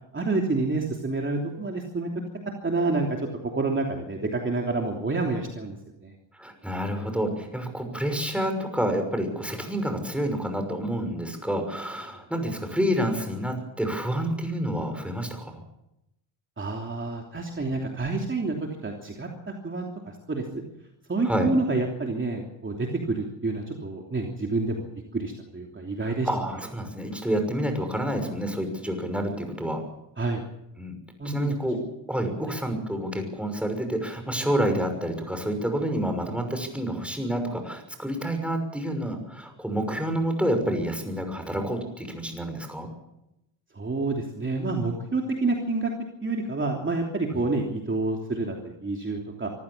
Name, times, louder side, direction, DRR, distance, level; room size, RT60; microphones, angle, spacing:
voice 1, 0.1-2.1 2.6-3.3 3.5-5.8 6.0-6.1 16.6-18.5 18.8-19.9 20.3-20.6 21.1-24.9 25.1-26.3 30.2-30.4 31.2-31.6 43.7-45.9 46.2-49.5, right 3 dB, 25° right, 1 dB, 3.2 m, -28 dB
voice 2, 6.3-15.6 21.2-21.5 26.0-29.8 30.8-30.9 31.2-31.8 32.1-42.9 47.3-47.4, equal, 5° right, 5 dB, 6.2 m, -28 dB
25.0 x 15.5 x 7.4 m, 0.87 s
cardioid pair, 90°, 45 cm